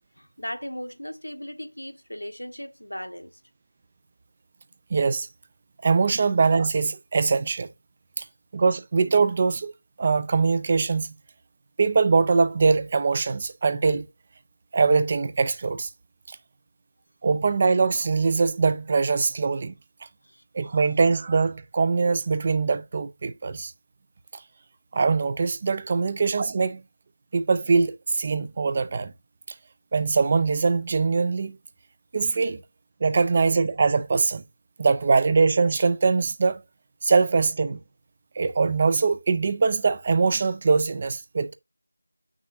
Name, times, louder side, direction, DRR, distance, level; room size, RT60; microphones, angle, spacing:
voice 1, 0.1-3.4 8.2-8.3 20.2-20.4 25.9-26.1, equal, 85° left, 1.3 m, -37 dB
voice 2, 4.9-5.3 5.8-7.7 8.2-8.3 8.5-11.2 11.8-14.1 14.7-15.9 16.3-16.4 17.2-19.7 20.5-23.7 24.3-24.4 24.9-26.8 27.3-29.1 29.9-31.6 32.1-32.6 33.0-34.4 34.8-36.6 37.0-37.8 38.4-41.6, right 4 dB, 20° right, 0.4 m, -22 dB
7.0 x 6.1 x 2.6 m
figure-of-eight pair, 170°, 0 cm